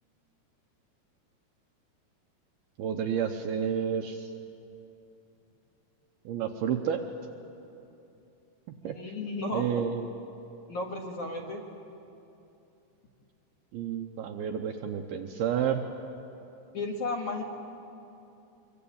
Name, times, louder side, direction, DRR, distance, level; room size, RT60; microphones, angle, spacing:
voice 1, 2.8-4.3 6.3-7.0 8.8-8.9 9.5-10.1 13.7-15.8, right 8 dB, 75° right, 4 dB, 2.4 m, -30 dB
voice 2, 8.8-9.7 10.7-11.6 16.7-17.4, left 2 dB, 50° left, 2 dB, 2.7 m, -33 dB
24.5 x 24.0 x 8.8 m, 2.8 s
omnidirectional pair, 5.3 m